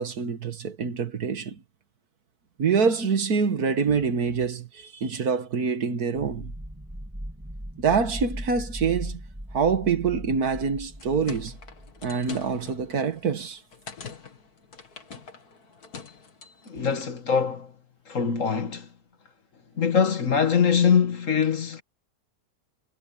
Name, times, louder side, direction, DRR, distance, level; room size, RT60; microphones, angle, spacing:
voice 1, 0.0-1.6 2.6-6.5 7.8-9.2 9.5-11.6 12.0-13.6, right 5 dB, 70° right, 2.0 m, -25 dB
sound 1, 6.1-12.9, equal, 10° right, 2.9 m, -39 dB
sound 2, 10.8-17.2, left 6 dB, 70° left, 2.7 m, -44 dB
voice 2, 16.7-17.7 18.1-18.9 19.8-21.8, left 6 dB, 55° left, 1.8 m, -23 dB
omnidirectional pair, 1.7 m